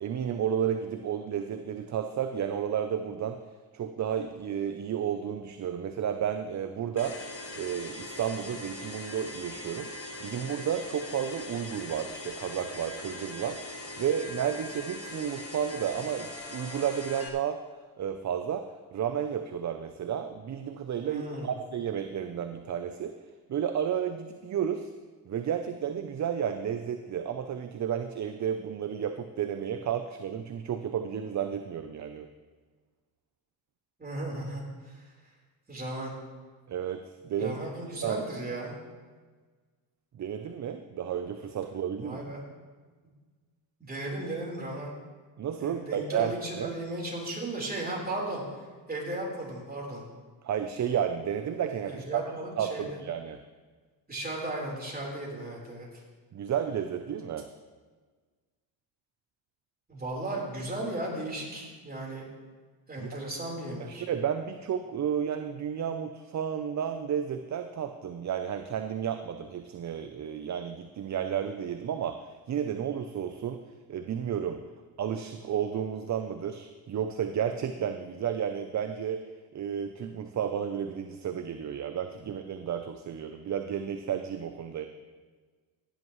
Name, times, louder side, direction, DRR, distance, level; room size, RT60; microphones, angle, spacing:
voice 1, 0.0-3.4 3.7-7.2 7.5-9.9 10.2-17.6 18.0-18.6 18.9-23.1 23.5-24.9 25.3-32.3 36.7-38.2 40.2-42.2 45.4-46.7 50.4-52.2 52.6-53.4 56.3-57.5 63.0-63.2 63.8-73.6 73.9-74.6 75.0-79.2 79.5-84.9, right 8 dB, 35° right, 8 dB, 0.7 m, -32 dB
sound 1, 7.0-17.3, left 2 dB, 30° left, 1.7 m, -41 dB
voice 2, 21.0-21.5 34.0-35.1 35.7-36.1 37.4-38.7 42.0-42.4 43.8-44.9 45.6-48.4 48.9-50.0 51.8-52.8 54.1-56.0 59.9-62.3 62.9-64.0, right 1 dB, 20° right, -3 dB, 4.1 m, -36 dB
16.5 x 10.5 x 3.2 m, 1.4 s
cardioid pair, 100°, 47 cm